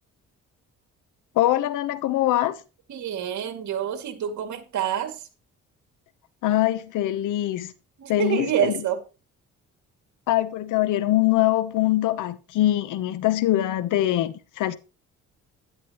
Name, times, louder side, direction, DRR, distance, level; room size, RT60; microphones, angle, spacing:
voice 1, 1.3-2.6 6.4-7.7 8.1-8.8 10.3-14.8, left 14 dB, 85° left, 1.0 m, -23 dB
voice 2, 2.9-5.3 8.0-9.0, right 10 dB, 70° right, 2.5 m, -27 dB
12.0 x 11.0 x 3.1 m
cardioid pair, 90°, 30 cm